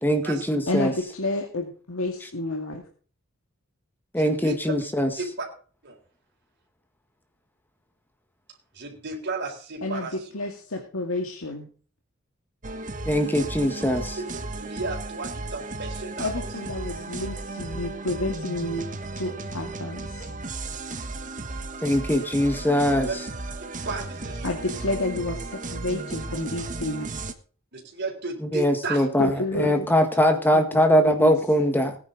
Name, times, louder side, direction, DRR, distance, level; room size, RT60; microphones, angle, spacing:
voice 1, 0.0-0.9 4.1-5.1 13.0-14.1 21.8-23.1 28.5-29.3 29.6-32.0, equal, 10° left, 6 dB, 1.5 m, -21 dB
voice 2, 0.7-2.8 9.8-11.7 16.2-18.9 19.2-20.3 24.4-27.1 29.2-29.9 30.5-31.4, left 2 dB, 80° left, 2 dB, 2.0 m, -30 dB
voice 3, 4.2-4.6 5.2-5.5 5.8-6.0 8.7-10.1 14.2-14.3 14.5-16.5 23.0-23.1 23.9-24.6 27.7-29.0, right 3 dB, 55° right, -1 dB, 3.9 m, -34 dB
sound 1, 12.6-27.3, right 2 dB, 40° right, 1.3 m, -35 dB
18.5 x 9.9 x 3.9 m, 0.42 s
head